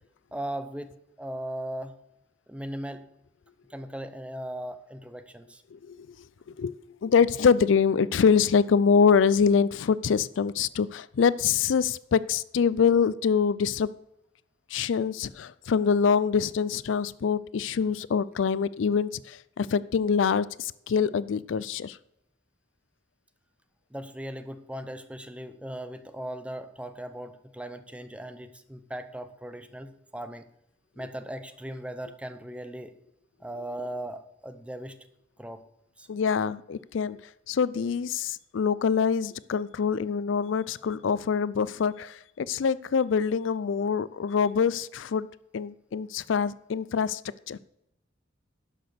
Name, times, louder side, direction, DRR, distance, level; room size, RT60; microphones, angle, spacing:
voice 1, 0.3-2.0 2.5-3.1 3.7-5.6 23.9-30.5 31.0-32.9 33.4-35.0 35.4-35.6 36.0-36.1, right 1 dB, 5° right, 10 dB, 0.7 m, -38 dB
voice 2, 5.7-6.2 6.6-6.7 7.0-13.9 14.7-22.0 36.1-37.2 37.5-45.3 45.5-47.2 47.5-47.6, left 6 dB, 75° left, 18 dB, 0.4 m, -25 dB
11.5 x 6.0 x 6.7 m, 0.81 s
head